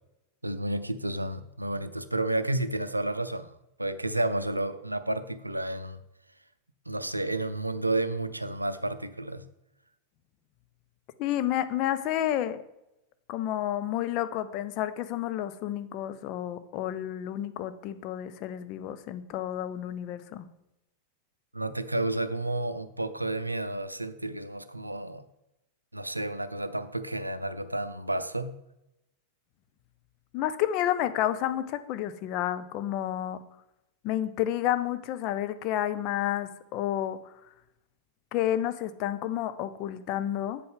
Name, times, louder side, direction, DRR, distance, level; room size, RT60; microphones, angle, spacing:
voice 1, 0.4-6.0 6.9-9.5 21.5-25.3 25.9-28.5, right 1 dB, 85° right, 12 dB, 0.5 m, -31 dB
voice 2, 11.2-12.6 13.3-20.5 30.3-33.4 34.0-37.3 38.3-40.6, left 12 dB, 40° left, 11 dB, 0.6 m, -30 dB
8.4 x 7.7 x 3.6 m, 0.89 s
figure-of-eight pair, 90°, 0 cm